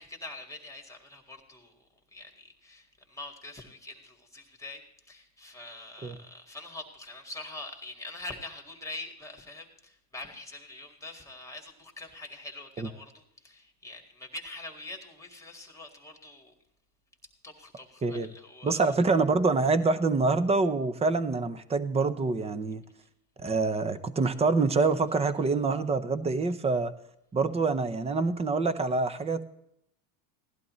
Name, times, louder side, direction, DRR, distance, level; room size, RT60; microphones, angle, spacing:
voice 1, 0.0-4.8 5.1-16.6 17.4-18.8, left 2 dB, 5° left, 3 dB, 2.0 m, -44 dB
voice 2, 18.6-22.8 23.4-26.9 27.3-29.4, right 3 dB, 15° right, 13 dB, 0.6 m, -26 dB
17.0 x 11.5 x 3.1 m, 0.77 s
supercardioid pair, 125°, 49 cm